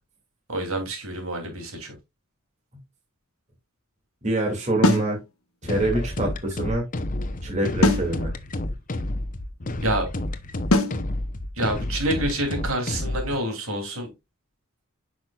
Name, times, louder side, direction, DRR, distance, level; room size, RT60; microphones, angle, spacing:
voice 1, 0.5-1.9 9.8-10.1 11.6-14.1, right 1 dB, 70° right, 3.0 m, -27 dB
voice 2, 4.2-5.2 5.6-6.8 7.4-8.3, right 1 dB, 35° right, 2.6 m, -25 dB
sound 1, 4.8-5.1 7.8-8.1 10.7-11.0, left 2 dB, 75° left, 1.2 m, -19 dB
sound 2, 5.6-13.3, left 1 dB, 40° left, 0.8 m, -30 dB
9.7 x 6.1 x 2.4 m
head